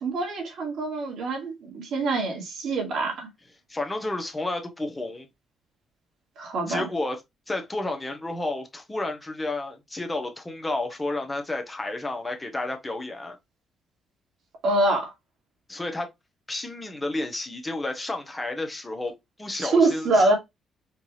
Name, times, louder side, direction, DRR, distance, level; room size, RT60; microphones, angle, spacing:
voice 1, 0.0-3.3 6.4-6.9 14.6-15.1 19.6-20.4, right 2 dB, 75° right, 2.0 m, -24 dB
voice 2, 3.7-5.3 6.7-7.2 7.5-13.4 15.7-16.1 16.5-19.1 19.4-20.3, left 2 dB, 15° left, 1.0 m, -31 dB
4.4 x 2.6 x 3.2 m
cardioid pair, 90°, 0 cm